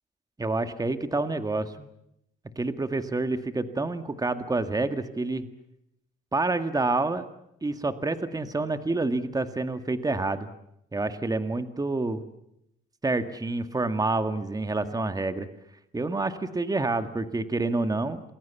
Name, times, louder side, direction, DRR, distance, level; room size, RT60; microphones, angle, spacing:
voice 1, 0.4-1.9 2.6-5.5 6.3-7.3 7.6-10.5 10.9-12.2 13.0-15.5 15.9-18.2, right 2 dB, 20° right, 9 dB, 1.9 m, -28 dB
28.0 x 21.0 x 7.2 m, 0.80 s
cardioid pair, 90°, 20 cm